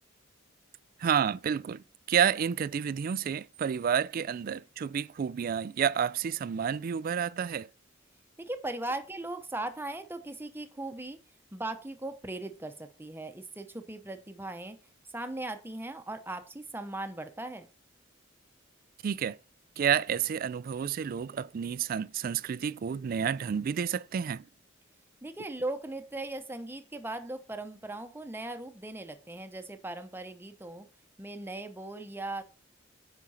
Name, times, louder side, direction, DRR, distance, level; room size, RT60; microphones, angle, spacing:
voice 1, 1.0-7.7 19.0-19.4 19.8-24.4, right 8 dB, 45° right, 0.3 m, -30 dB
voice 2, 8.4-11.2 11.5-14.8 15.1-17.7 25.2-30.9 31.2-32.4, right 2 dB, 10° right, 0.8 m, -38 dB
9.5 x 5.2 x 4.3 m
head